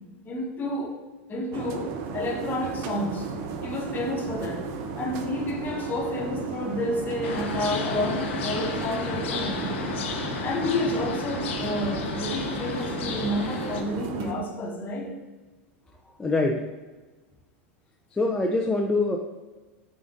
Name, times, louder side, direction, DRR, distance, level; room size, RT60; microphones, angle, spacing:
voice 1, 0.2-0.9 1.3-3.3 3.6-4.6 5.0-9.8 10.4-15.1, left 1 dB, 30° left, 0 dB, 0.9 m, -30 dB
sound 1, 1.5-14.3, right 5 dB, 55° right, 0.5 m, -35 dB
sound 2, 7.2-13.8, left 5 dB, 75° left, 0.6 m, -33 dB
voice 2, 16.2-16.7 18.1-19.2, left 2 dB, 10° left, 1 dB, 0.3 m, -24 dB
5.0 x 3.7 x 2.5 m, 1.2 s
hypercardioid pair, 100°, 7 cm